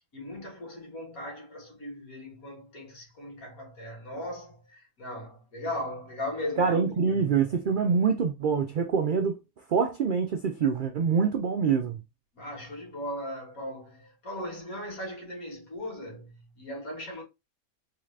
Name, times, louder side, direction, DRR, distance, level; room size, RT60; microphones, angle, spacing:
voice 1, 0.1-7.4 12.3-17.2, left 1 dB, 75° left, 2.1 m, -38 dB
voice 2, 6.6-9.4 9.7-12.0, right 6 dB, 90° right, 0.4 m, -25 dB
3.8 x 2.4 x 3.2 m
omnidirectional pair, 1.5 m